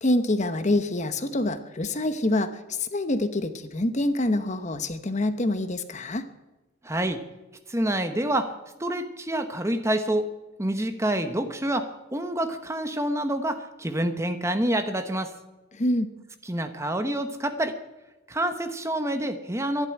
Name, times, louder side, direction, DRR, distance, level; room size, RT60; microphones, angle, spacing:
voice 1, 0.0-6.3 15.7-16.1, left 1 dB, 35° left, 10 dB, 0.9 m, -26 dB
voice 2, 6.8-7.2 7.7-8.5 8.8-10.3 10.6-15.3 16.4-17.8 18.3-19.9, right 1 dB, 15° right, 8 dB, 0.9 m, -27 dB
12.0 x 11.0 x 9.9 m, 1.1 s
head